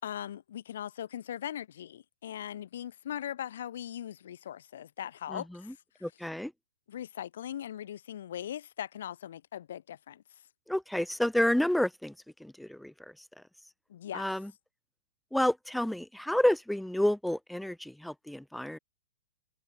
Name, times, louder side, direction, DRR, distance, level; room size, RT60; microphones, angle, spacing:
voice 1, 0.0-5.7 6.9-10.2 13.9-14.3, left 10 dB, 65° left, 7.2 m, -40 dB
voice 2, 5.3-5.7 6.0-6.5 10.7-12.1 12.4-12.9 14.1-14.5 15.3-18.8, left 1 dB, ahead, 1.5 m, -29 dB
hypercardioid pair, 160°, 0 cm